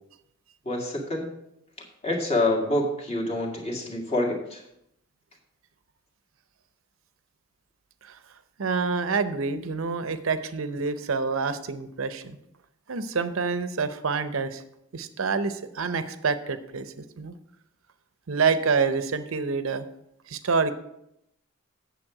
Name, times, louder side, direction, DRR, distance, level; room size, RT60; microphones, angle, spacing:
voice 1, 0.7-1.3 2.0-4.6, left 1 dB, 30° left, -1 dB, 1.8 m, -27 dB
voice 2, 8.6-12.4 12.9-14.6 14.9-17.3 18.3-19.8 20.3-20.7, right 5 dB, 75° right, 11 dB, 0.7 m, -27 dB
8.9 x 6.9 x 4.8 m, 0.80 s
head